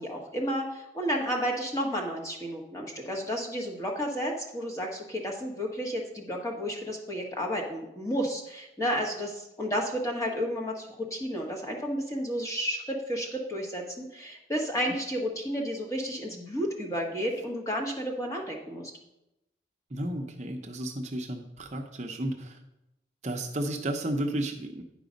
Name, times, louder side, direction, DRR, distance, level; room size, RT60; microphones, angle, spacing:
voice 1, 0.0-18.9, equal, 15° left, -1 dB, 1.4 m, -32 dB
voice 2, 19.9-22.6 23.2-24.8, right 1 dB, 40° right, 3 dB, 0.7 m, -33 dB
10.0 x 5.0 x 5.2 m, 0.88 s
head